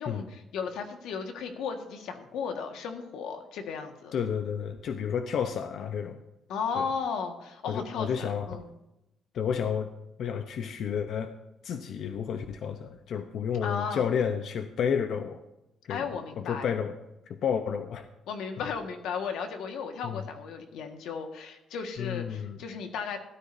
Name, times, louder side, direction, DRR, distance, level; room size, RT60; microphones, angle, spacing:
voice 1, 0.0-4.1 6.5-8.7 13.6-14.1 15.9-16.7 18.3-23.2, left 6 dB, 90° left, 5 dB, 1.6 m, -35 dB
voice 2, 4.1-6.2 6.8-6.9 7.7-8.6 9.3-9.9 10.2-11.3 11.6-15.4 15.9-16.1 16.4-17.0 17.3-18.1 18.6-18.7 20.0-20.2 22.0-22.6, left 7 dB, 60° left, 8 dB, 0.7 m, -31 dB
17.0 x 13.0 x 2.7 m, 0.93 s
cardioid pair, 155°, 0 cm